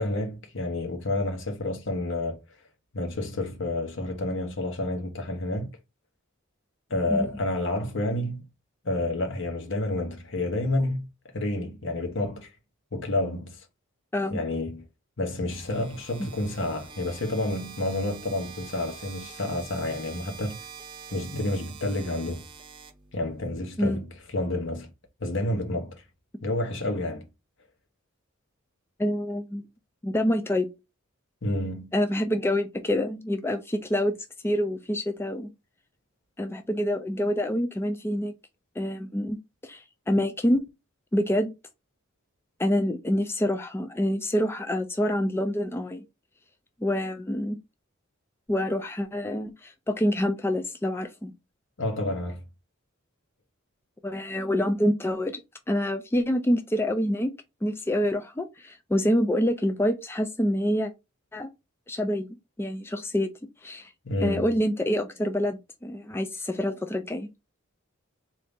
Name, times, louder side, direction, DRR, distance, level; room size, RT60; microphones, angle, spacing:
voice 1, 0.0-2.4 2.9-5.8 6.9-8.4 8.8-11.1 11.3-12.5 12.9-13.7 14.3-14.8 15.2-20.6 21.1-22.5 23.1-24.1 24.3-24.9 25.2-26.0 26.4-27.3 31.4-31.9 51.8-52.5 64.0-64.5, left 1 dB, 65° left, 1.0 m, -29 dB
sound 1, 15.5-23.5, right 6 dB, 25° right, 0.7 m, -45 dB
voice 2, 29.0-29.6 30.0-30.7 31.9-34.1 34.4-35.5 36.4-38.3 38.8-40.7 41.1-41.5 42.6-46.0 46.8-47.6 48.5-51.3 54.0-55.4 55.7-57.3 57.6-60.9 61.3-61.5 61.9-62.3 62.6-63.3 63.6-63.9 64.2-67.3, equal, 10° left, 0.4 m, -26 dB
4.0 x 2.7 x 3.5 m
head